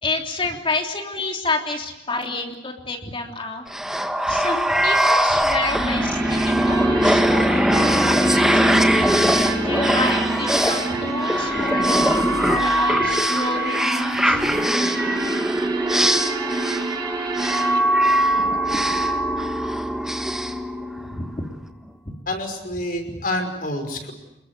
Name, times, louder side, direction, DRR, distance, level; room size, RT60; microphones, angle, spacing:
voice 1, 0.0-3.6 4.3-8.9 9.6-14.4 21.2-21.5 22.0-22.2, left 2 dB, 30° left, 2 dB, 3.3 m, -29 dB
sound 1, 3.7-21.3, right 1 dB, 5° right, 1.5 m, -21 dB
sound 2, 5.8-17.8, right 3 dB, 25° right, 5.9 m, -29 dB
voice 2, 22.3-24.1, left 1 dB, 55° left, 5 dB, 5.8 m, -27 dB
30.0 x 21.5 x 8.3 m, 0.90 s
head